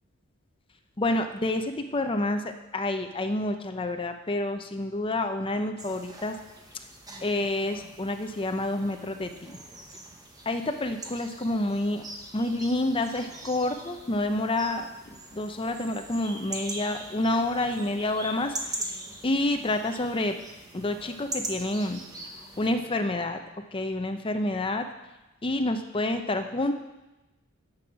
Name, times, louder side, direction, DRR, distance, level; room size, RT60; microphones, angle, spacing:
voice 1, 1.0-6.4 7.2-9.6 10.5-12.0 12.3-18.9 19.2-20.3 20.7-22.0 22.6-23.4 23.7-24.8 25.4-26.7, left 2 dB, 25° left, 6 dB, 0.7 m, -28 dB
sound 1, 5.8-22.7, right 2 dB, 20° right, 0.9 m, -42 dB
9.6 x 6.3 x 6.1 m, 1.0 s
head